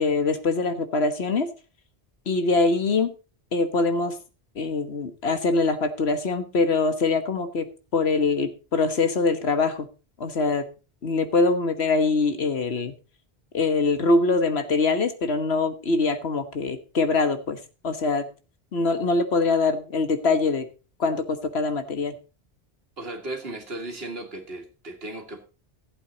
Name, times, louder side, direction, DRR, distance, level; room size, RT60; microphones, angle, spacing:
voice 1, 0.0-1.5 2.3-3.1 3.5-4.2 4.5-9.9 10.2-10.6 11.0-12.9 13.5-18.3 18.7-20.7 21.0-22.1, left 3 dB, 80° left, 1.6 m, -23 dB
voice 2, 23.0-25.4, right 2 dB, 70° right, 2.1 m, -36 dB
15.5 x 8.1 x 4.0 m
omnidirectional pair, 1.1 m